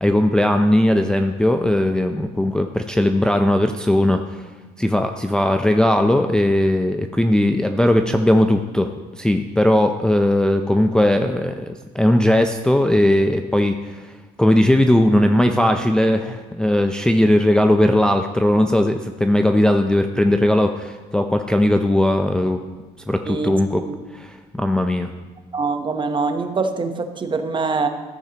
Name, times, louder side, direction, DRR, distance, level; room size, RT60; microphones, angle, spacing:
voice 1, 0.0-4.4 4.8-14.1 14.4-22.6 23.1-23.8 24.1-25.1, left 1 dB, 5° left, 5 dB, 0.4 m, -18 dB
voice 2, 25.5-27.9, right 4 dB, 30° right, 7 dB, 0.8 m, -23 dB
13.5 x 8.9 x 2.9 m, 1.3 s
cardioid pair, 110°, 17 cm